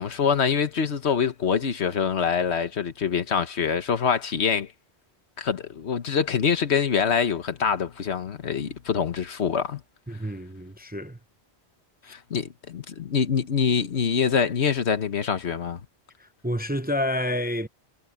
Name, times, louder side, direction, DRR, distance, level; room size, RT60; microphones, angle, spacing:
voice 1, 0.0-4.7 5.4-9.8 12.1-15.8, left 6 dB, 75° left, 1.4 m, -25 dB
voice 2, 10.1-11.2 12.0-12.1 16.2-17.7, left 1 dB, 10° right, 0.7 m, -29 dB
omnidirectional pair, 1.1 m